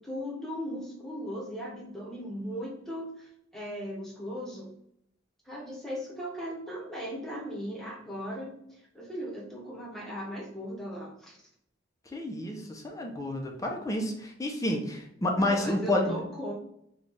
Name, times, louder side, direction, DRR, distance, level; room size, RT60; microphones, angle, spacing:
voice 1, 0.0-4.7 5.4-8.5 8.9-11.4 15.4-16.5, equal, ahead, -4 dB, 1.0 m, -38 dB
voice 2, 12.1-16.2, left 1 dB, 20° left, 1 dB, 0.5 m, -29 dB
3.2 x 2.3 x 3.9 m, 0.73 s
head